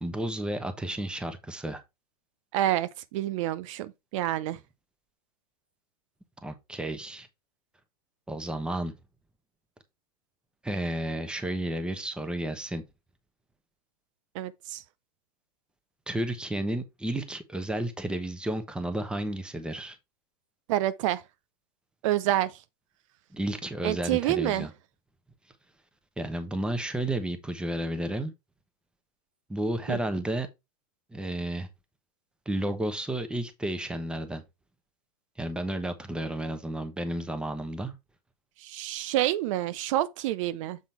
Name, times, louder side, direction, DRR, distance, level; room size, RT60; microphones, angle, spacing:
voice 1, 0.0-1.8 6.4-7.3 8.3-8.9 10.6-12.8 16.1-20.0 23.3-24.7 26.2-28.3 29.5-30.5 31.1-31.7 32.5-34.4 35.4-38.0, right 1 dB, 5° right, 1.0 m, -32 dB
voice 2, 2.5-4.6 14.3-14.8 20.7-21.2 22.0-22.5 23.8-24.7 29.9-30.0 38.6-40.8, right 13 dB, 55° right, 0.5 m, -28 dB
7.2 x 3.8 x 4.4 m
hypercardioid pair, 130°, 19 cm